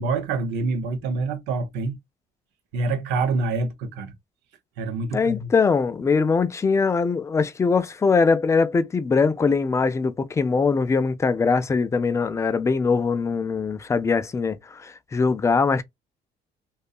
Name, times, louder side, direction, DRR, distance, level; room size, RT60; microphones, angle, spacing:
voice 1, 0.0-2.0 2.7-4.1 4.8-5.5, right 3 dB, 85° right, 0.7 m, -26 dB
voice 2, 5.1-15.8, left 4 dB, 15° left, 0.3 m, -22 dB
2.7 x 2.2 x 2.3 m
cardioid pair, 110°, 17 cm